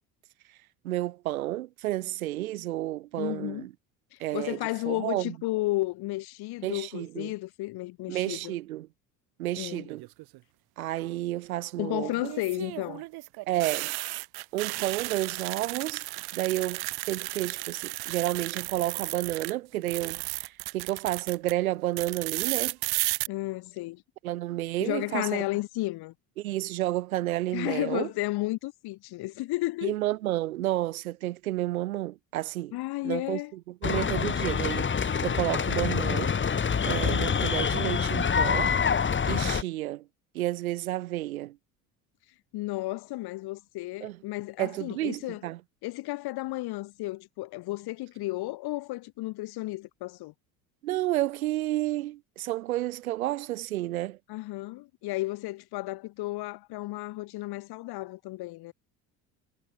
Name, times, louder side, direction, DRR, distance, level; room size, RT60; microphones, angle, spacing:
voice 1, 0.8-3.7 4.2-4.6 4.9-5.3 6.6-7.3 8.1-8.9 9.4-10.1 10.8-12.3 13.5-13.9 14.5-16.0 16.3-22.8 24.2-25.4 26.4-28.1 29.8-32.7 33.0-33.4 33.8-36.4 36.9-38.8 39.2-40.1 40.3-41.6 44.0-44.2 44.6-45.6 50.8-54.2, right 15 dB, 85° right, 2.4 m, -31 dB
voice 2, 3.2-3.7 4.1-8.6 9.6-9.9 11.8-13.0 23.3-24.0 24.8-26.1 27.5-29.9 32.7-33.5 42.5-45.4 45.8-50.3 54.3-58.7, left 19 dB, 65° left, 7.1 m, -33 dB
sound 1, 9.9-10.4 12.3-19.5 19.8-21.5 22.0-23.3, right 21 dB, 65° right, 1.8 m, -34 dB
sound 2, 33.8-39.6, left 6 dB, 30° left, 2.0 m, -26 dB
hypercardioid pair, 70°, 41 cm